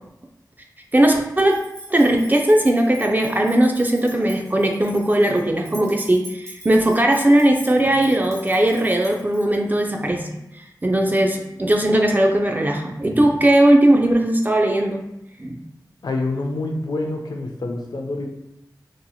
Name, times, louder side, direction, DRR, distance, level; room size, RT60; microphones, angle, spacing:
voice 1, 0.9-1.6 1.9-10.2 10.5-15.0 15.4-15.6, right 1 dB, 25° right, 2 dB, 0.3 m, -18 dB
sound 1, 1.4-9.7, right 1 dB, 40° right, 1.2 m, -42 dB
voice 2, 16.0-18.3, left 2 dB, 70° left, 3 dB, 0.4 m, -26 dB
2.8 x 2.7 x 2.3 m, 0.87 s
cardioid pair, 45°, 7 cm